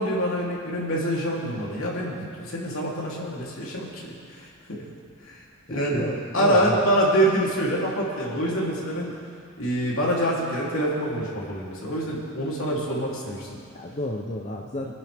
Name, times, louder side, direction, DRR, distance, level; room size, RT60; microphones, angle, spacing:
voice 1, 0.0-4.8 5.2-5.4 5.7-6.0 6.3-9.2 9.6-13.6 14.8-14.9, right 1 dB, 70° left, -5 dB, 3.3 m, -26 dB
voice 2, 5.7-6.8 11.9-12.0 13.7-14.9, left 1 dB, 35° left, 1 dB, 0.7 m, -32 dB
24.5 x 10.5 x 3.6 m, 2.2 s
head